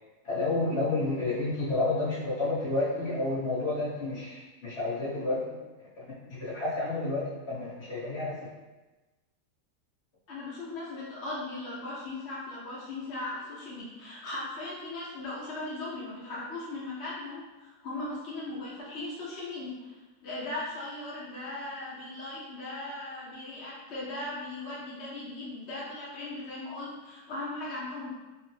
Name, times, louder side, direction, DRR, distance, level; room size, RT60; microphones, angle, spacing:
voice 1, 0.2-5.9 6.3-8.5, left 2 dB, 45° left, -9 dB, 1.2 m, -30 dB
voice 2, 10.3-20.0 20.2-28.1, left 2 dB, 65° left, -7 dB, 0.6 m, -38 dB
3.0 x 2.0 x 3.1 m, 1.1 s
omnidirectional pair, 1.8 m